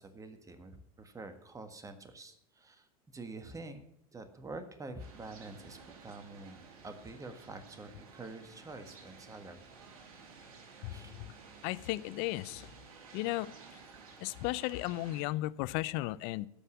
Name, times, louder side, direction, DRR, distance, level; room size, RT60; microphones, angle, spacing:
voice 1, 0.0-3.8 4.1-6.6 6.8-9.6 10.9-11.2, right 3 dB, 15° right, 8 dB, 1.6 m, -47 dB
sound 1, 5.0-15.2, right 5 dB, 70° right, 2.5 m, -54 dB
voice 2, 11.6-12.7 13.1-13.5 14.2-16.5, left 18 dB, 55° left, 18 dB, 0.6 m, -35 dB
13.0 x 5.5 x 8.5 m, 0.75 s
hypercardioid pair, 90°, 19 cm